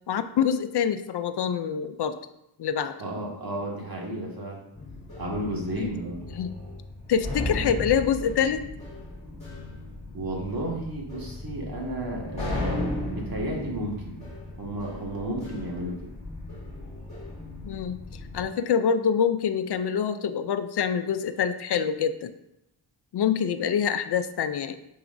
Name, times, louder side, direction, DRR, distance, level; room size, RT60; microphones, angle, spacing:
voice 1, 0.1-2.2 2.6-2.9 5.8-5.9 6.4-6.6 7.1-8.7 17.6-18.0 18.3-22.3 23.1-24.7, left 7 dB, 60° left, 10 dB, 0.5 m, -25 dB
voice 2, 3.0-4.6 5.2-6.2 10.1-14.2 14.6-16.1, right 1 dB, 50° right, -2 dB, 1.8 m, -32 dB
sound 1, 4.8-18.5, left 1 dB, 15° left, 2.4 m, -36 dB
9.1 x 4.8 x 2.6 m, 0.84 s
wide cardioid pair, 90°, 44 cm